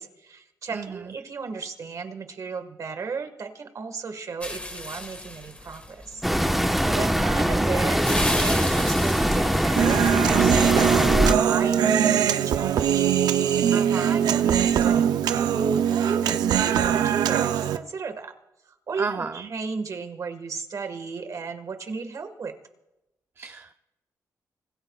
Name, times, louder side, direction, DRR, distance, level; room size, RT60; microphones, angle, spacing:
voice 1, 0.0-6.3 7.0-18.3 18.7-22.5, right 4 dB, 55° right, 7 dB, 1.7 m, -34 dB
voice 2, 0.7-1.1 6.8-7.8 13.7-14.2 19.0-19.5 23.4-23.7, right 4 dB, 40° right, 6 dB, 0.6 m, -33 dB
sound 1, 4.4-10.5, left 2 dB, 20° left, 1.8 m, -35 dB
sound 2, 6.2-11.3, equal, ahead, 1.2 m, -22 dB
Human voice, 9.8-17.8, right 9 dB, 90° right, 0.6 m, -22 dB
25.5 x 19.5 x 2.4 m, 0.96 s
cardioid pair, 90°, 7 cm